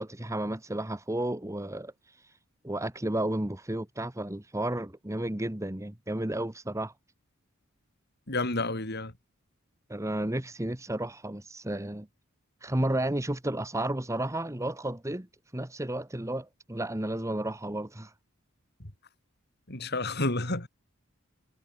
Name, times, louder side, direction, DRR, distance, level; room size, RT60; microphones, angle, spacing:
voice 1, 0.0-1.9 2.6-6.9 9.9-12.1 12.6-15.3 15.5-18.1, right 1 dB, 15° right, 1.3 m, -32 dB
voice 2, 8.3-9.1 19.7-20.7, left 2 dB, 50° left, 4.6 m, -30 dB
head